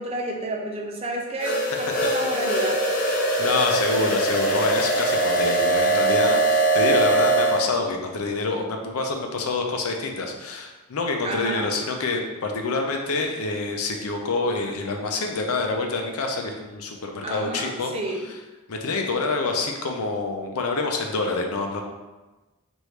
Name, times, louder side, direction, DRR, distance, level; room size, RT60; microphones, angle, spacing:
voice 1, 0.0-2.8 11.2-11.8 17.2-18.3, right 2 dB, 25° right, 0 dB, 0.5 m, -30 dB
sound 1, 1.4-7.6, right 2 dB, 40° left, 0.6 m, -22 dB
voice 2, 3.4-17.9 18.7-21.8, left 3 dB, 80° left, 2 dB, 0.6 m, -26 dB
4.7 x 2.6 x 3.2 m, 1.2 s
head